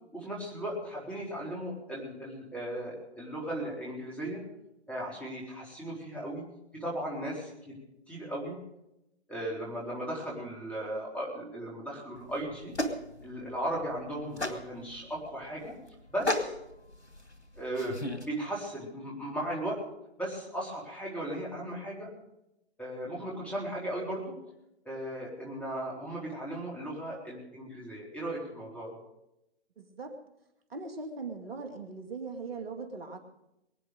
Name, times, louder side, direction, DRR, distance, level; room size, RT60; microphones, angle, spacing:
voice 1, 0.1-4.4 4.9-6.4 6.7-7.8 8.1-8.6 9.3-12.7 13.2-15.8 16.1-16.5 17.6-19.8 20.2-22.1 22.8-24.3 24.8-28.9, right 1 dB, 5° left, -4 dB, 4.1 m, -36 dB
sound 1, 12.2-18.3, left 1 dB, 85° left, 2.4 m, -36 dB
voice 2, 29.8-30.2 30.7-33.2, right 4 dB, 60° right, 5 dB, 2.4 m, -40 dB
23.0 x 9.6 x 5.0 m, 0.86 s
figure-of-eight pair, 140°, 33 cm